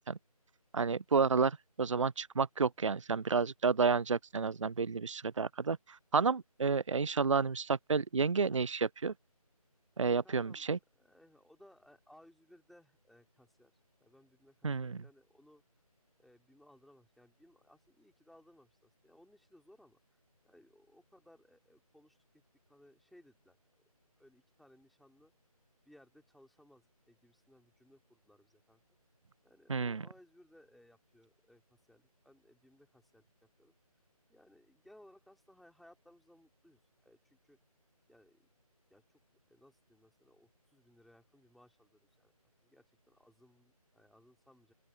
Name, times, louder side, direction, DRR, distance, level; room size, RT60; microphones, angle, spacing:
voice 1, 0.7-9.1 10.0-10.8 14.6-15.0 29.7-30.0, right 5 dB, 55° right, 0.4 m, -31 dB
voice 2, 10.2-13.7 14.0-15.8 16.2-22.4 22.7-23.6 24.2-25.3 25.8-28.8 29.4-33.7 34.3-37.6 38.1-38.4 38.9-39.2 39.5-42.3 42.6-44.7, left 1 dB, ahead, 4.1 m, -63 dB
open air
figure-of-eight pair, 160°, 20 cm